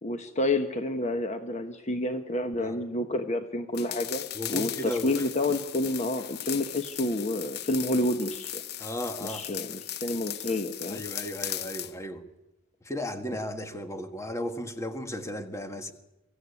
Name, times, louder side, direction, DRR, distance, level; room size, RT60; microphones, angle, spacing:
voice 1, 0.0-8.6 9.3-11.0, left 1 dB, 35° left, 1.2 m, -29 dB
sound 1, 3.7-11.9, left 12 dB, 55° left, 0.7 m, -37 dB
voice 2, 4.3-5.2 8.8-9.5 10.9-12.2 12.8-15.9, left 1 dB, 15° left, 1.6 m, -35 dB
24.0 x 15.0 x 9.7 m
head